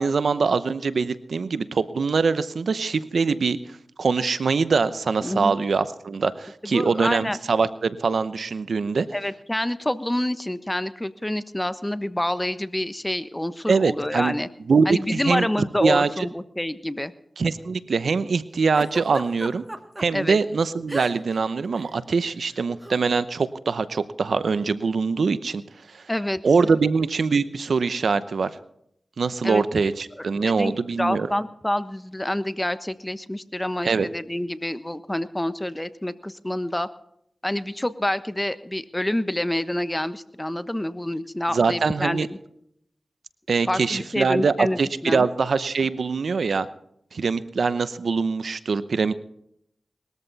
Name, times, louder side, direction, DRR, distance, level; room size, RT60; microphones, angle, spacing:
voice 1, 0.0-3.6 4.0-9.1 13.7-14.3 14.7-15.5 15.8-16.1 17.4-19.6 20.0-25.6 25.9-26.0 26.4-28.5 29.2-31.3 33.8-34.1 41.5-42.3 43.5-46.7 47.1-49.1, right 4 dB, 80° right, 14 dB, 0.8 m, -23 dB
voice 2, 5.2-5.6 6.6-7.4 9.1-14.5 14.8-17.1 20.1-20.4 26.1-26.8 29.4-29.6 30.2-36.9 37.4-42.4 43.7-45.3, left 1 dB, 15° left, 13 dB, 1.2 m, -27 dB
Giggle, 18.8-20.1 20.9-21.4 21.7-21.9 22.8-23.0, right 1 dB, 20° right, 1.8 m, -34 dB
20.5 x 13.5 x 4.1 m, 0.72 s
cardioid pair, 45°, 0 cm